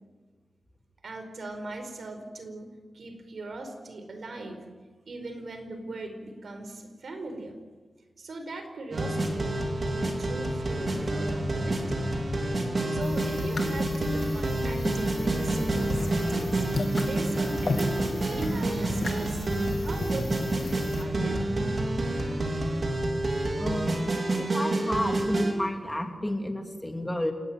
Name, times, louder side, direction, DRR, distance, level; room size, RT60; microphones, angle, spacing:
voice 1, 1.0-4.6 5.1-7.6 8.2-12.1 12.9-16.6 17.0-19.4 19.8-21.4, right 2 dB, 65° right, 7 dB, 4.7 m, -39 dB
sound 1, 8.9-25.5, right 1 dB, 50° right, 4.5 m, -28 dB
sound 2, 13.0-21.0, left 3 dB, 55° left, 2.5 m, -35 dB
voice 2, 23.6-27.3, left 1 dB, 10° left, 4 dB, 2.8 m, -31 dB
28.5 x 18.5 x 9.4 m, 1.4 s
wide cardioid pair, 110°, 0 cm